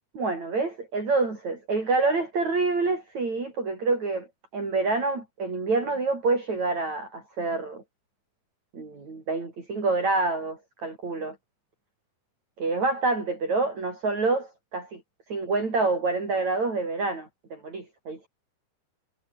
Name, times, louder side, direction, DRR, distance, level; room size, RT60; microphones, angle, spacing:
voice 1, 0.2-4.3 4.5-7.8 8.7-11.4 12.6-15.0 15.3-18.3, right 3 dB, 45° right, 7.2 m, -27 dB
omnidirectional pair, 4.7 m